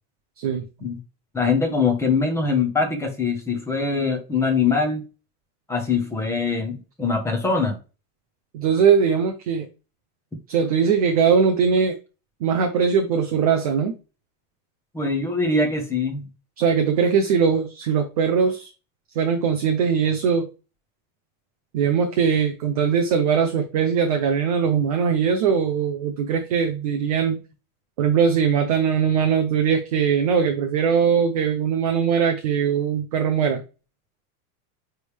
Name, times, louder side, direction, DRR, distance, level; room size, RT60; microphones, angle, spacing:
voice 1, 1.3-5.0 5.7-7.8 14.9-16.3, left 4 dB, 5° left, 0.9 m, -23 dB
voice 2, 8.5-9.7 10.5-12.0 12.4-14.0 16.6-18.7 19.2-20.5 21.7-27.4 28.0-33.6, right 6 dB, 30° right, 0.3 m, -21 dB
9.3 x 3.4 x 3.3 m
supercardioid pair, 175°, 46 cm